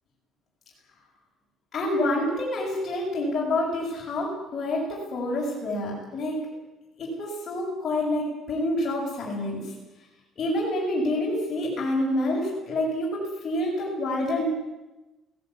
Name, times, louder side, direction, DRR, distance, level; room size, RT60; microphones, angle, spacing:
voice 1, 1.7-6.4 7.0-9.6 10.4-14.4, left 1 dB, 20° left, -5 dB, 7.3 m, -27 dB
21.5 x 17.5 x 9.9 m, 1.0 s
cardioid pair, 175°, 0 cm